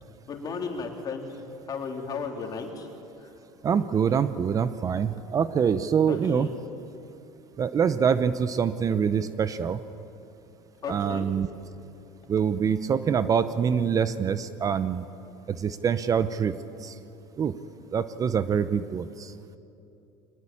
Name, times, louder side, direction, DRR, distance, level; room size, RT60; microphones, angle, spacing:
voice 1, 0.3-1.4 1.7-2.9 6.1-6.5 10.8-11.3, left 5 dB, 35° left, 2 dB, 3.3 m, -34 dB
voice 2, 3.6-6.5 7.6-9.8 10.9-11.5 12.3-15.0 15.5-16.9 17.4-17.5 17.9-19.3, right 7 dB, 35° right, 13 dB, 0.7 m, -25 dB
23.5 x 19.5 x 8.7 m, 2.9 s
supercardioid pair, 100°, 11 cm